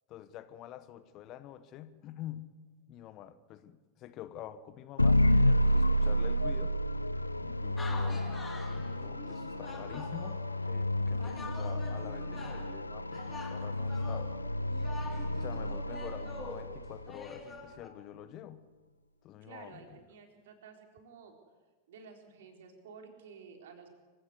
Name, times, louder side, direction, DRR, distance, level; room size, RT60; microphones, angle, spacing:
voice 1, 0.1-2.6 2.9-6.8 7.4-8.3 8.8-14.3 15.3-18.7 19.2-20.0, left 12 dB, 35° left, 14 dB, 1.2 m, -47 dB
sound 1, 5.0-17.1, equal, 85° left, 0.6 m, -30 dB
sound 2, 7.8-10.7 11.2-12.8 13.1-17.9, left 3 dB, 15° left, 3.4 m, -46 dB
voice 2, 19.4-21.3 21.9-23.9, right 5 dB, 60° right, 4 dB, 4.1 m, -52 dB
26.0 x 16.5 x 8.2 m, 1.3 s
figure-of-eight pair, 90°, 0 cm